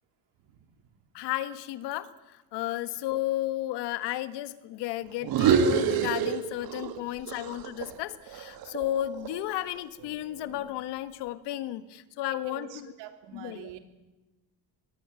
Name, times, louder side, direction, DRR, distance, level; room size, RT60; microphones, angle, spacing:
voice 1, 1.1-12.9 13.3-13.8, left 14 dB, 80° left, 13 dB, 1.6 m, -33 dB
sound 1, 5.2-7.0 7.3-9.5, right 7 dB, 60° right, 2.3 m, -27 dB
voice 2, 12.3-13.8, right 11 dB, 85° right, 7 dB, 3.4 m, -45 dB
24.5 x 20.0 x 9.0 m, 1.1 s
cardioid pair, 160°, 40 cm